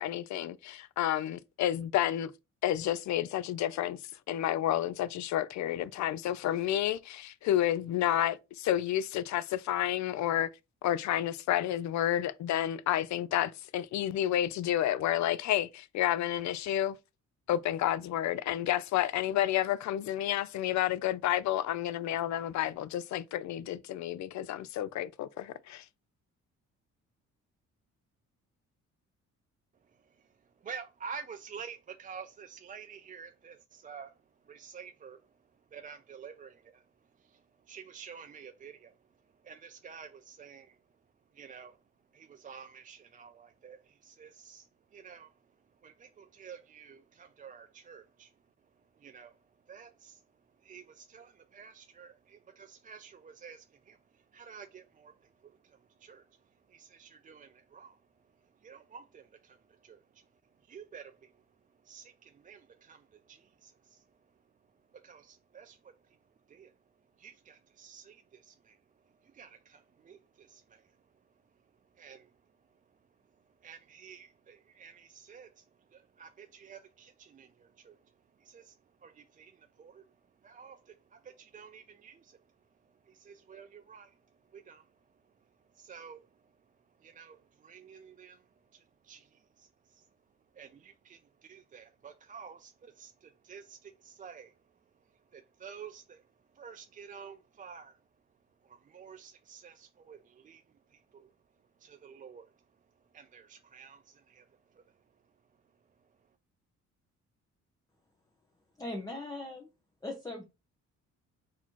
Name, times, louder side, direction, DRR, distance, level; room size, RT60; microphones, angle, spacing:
voice 1, 0.0-2.3 2.6-4.0 4.3-10.5 10.8-17.0 17.5-25.8, left 12 dB, 70° left, 0.5 m, -30 dB
voice 2, 30.6-34.2 34.5-35.2 35.7-36.8 37.2-37.4 37.7-38.9 39.4-40.8 41.3-41.8 42.1-45.3 45.8-48.3 49.0-49.4 49.7-50.2 50.6-55.1 55.4-56.3 56.7-58.0 58.6-60.2 60.7-61.3 61.8-64.0 64.9-65.9 66.5-66.7 67.2-68.8 69.2-70.8 72.0-72.3 73.6-75.6 75.9-78.0 78.4-78.7 79.0-80.0 80.4-82.4 83.1-84.1 84.5-84.9 85.7-86.3 87.0-88.4 88.7-90.1 90.5-94.5 95.3-96.2 96.6-98.0 98.6-100.6 100.9-101.3 101.8-102.5 103.1-104.5 104.8-104.9, right 6 dB, 30° right, 0.3 m, -50 dB
voice 3, 108.8-109.7 110.0-110.4, left 2 dB, 10° left, 1.0 m, -39 dB
4.0 x 2.8 x 4.5 m
cardioid pair, 90°, 30 cm